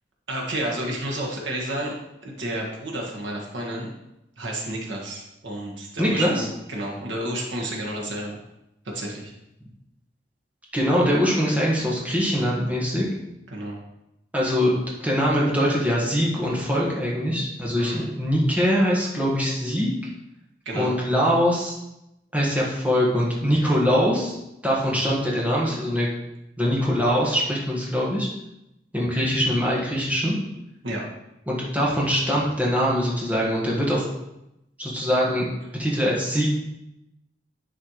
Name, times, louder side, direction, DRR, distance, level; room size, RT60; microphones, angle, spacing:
voice 1, 0.3-1.9 2.2-3.9 4.4-8.4 8.9-9.3 13.5-13.8 17.8-18.1 20.6-20.9 30.8-31.0, right 1 dB, 85° right, -2 dB, 1.6 m, -31 dB
voice 2, 6.0-6.5 10.7-13.0 14.3-14.7 15.0-19.9 20.7-21.8 22.3-24.4 24.6-26.1 26.6-28.3 28.9-30.4 31.5-34.1 34.8-35.5 35.8-36.5, equal, 10° right, -5 dB, 1.4 m, -22 dB
10.5 x 4.4 x 3.1 m, 0.87 s
head